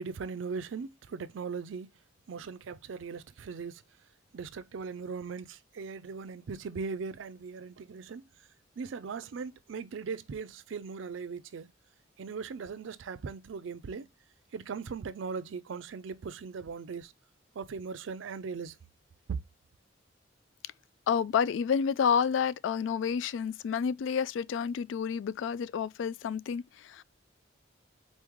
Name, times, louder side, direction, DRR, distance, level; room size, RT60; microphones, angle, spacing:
voice 1, 0.0-1.9 2.3-3.8 4.3-8.3 8.8-11.7 12.2-14.1 14.5-17.1 17.5-18.8, right 5 dB, 80° right, 0.4 m, -39 dB
voice 2, 21.1-27.0, left 7 dB, 75° left, 0.3 m, -29 dB
4.1 x 3.6 x 3.0 m
head